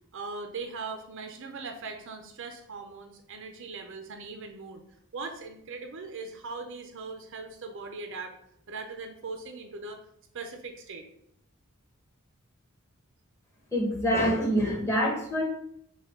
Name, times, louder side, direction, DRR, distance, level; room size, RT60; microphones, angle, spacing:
voice 1, 0.1-4.8 5.1-8.4 8.7-10.0 10.3-11.1, right 4 dB, 65° right, 5 dB, 0.6 m, -40 dB
voice 2, 13.7-15.4, equal, 15° left, -2 dB, 1.2 m, -26 dB
5.7 x 2.3 x 3.7 m, 0.68 s
head